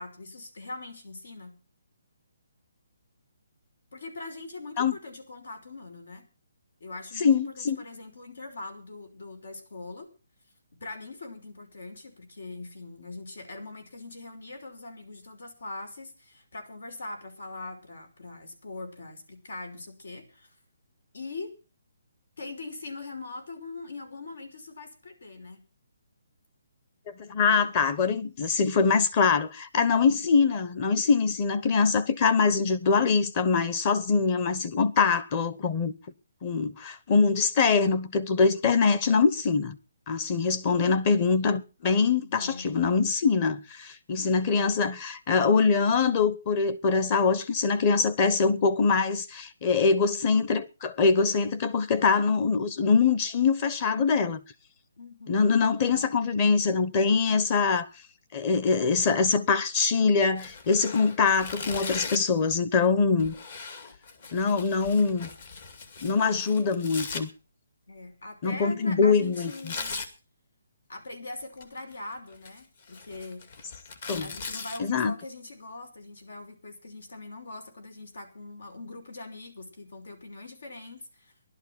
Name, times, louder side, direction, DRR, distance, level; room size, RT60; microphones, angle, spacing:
voice 1, 0.0-1.6 3.9-6.2 6.8-10.1 10.7-20.5 21.1-21.5 22.4-25.6 42.1-42.7 55.0-55.4 67.9-70.1 70.9-73.5 74.2-81.3, left 2 dB, 80° left, 5.5 m, -42 dB
voice 2, 7.2-7.8 27.2-35.9 36.4-39.8 40.1-54.4 55.3-57.9 58.3-63.3 64.3-65.3 66.0-67.3 68.4-69.7 74.1-74.3 74.8-75.1, left 5 dB, 25° left, 1.1 m, -23 dB
Tearing, 60.3-62.4 63.2-67.2 69.3-70.1 71.4-71.9 72.3-74.8, left 4 dB, 45° left, 2.3 m, -39 dB
16.0 x 11.5 x 5.9 m
hypercardioid pair, 170°, 0 cm